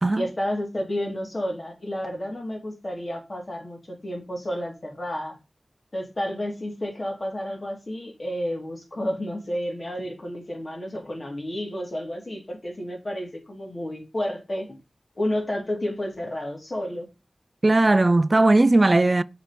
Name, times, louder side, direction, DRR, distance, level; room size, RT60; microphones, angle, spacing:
voice 1, 0.1-5.4 5.9-14.8 15.2-17.1, left 1 dB, 45° left, 3.3 m, -31 dB
voice 2, 17.6-19.2, right 2 dB, 40° right, 0.4 m, -18 dB
7.2 x 4.4 x 5.2 m
wide cardioid pair, 65°, 0 cm